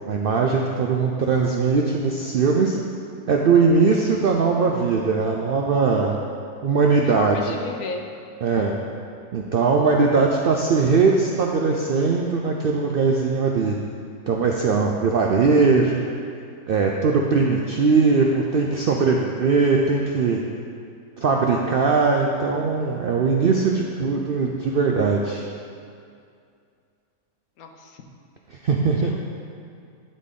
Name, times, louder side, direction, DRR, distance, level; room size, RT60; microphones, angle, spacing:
voice 1, 0.1-2.8 3.3-6.2 6.6-7.6 8.4-8.7 9.3-13.8 14.3-16.0 16.7-20.4 21.2-25.4 28.6-29.1, right 4 dB, 70° right, 0 dB, 0.5 m, -20 dB
voice 2, 7.1-8.1 8.4-8.7 27.6-28.0 29.0-29.3, left 4 dB, 80° left, 4 dB, 1.2 m, -33 dB
11.5 x 4.2 x 3.7 m, 2.4 s
omnidirectional pair, 1.5 m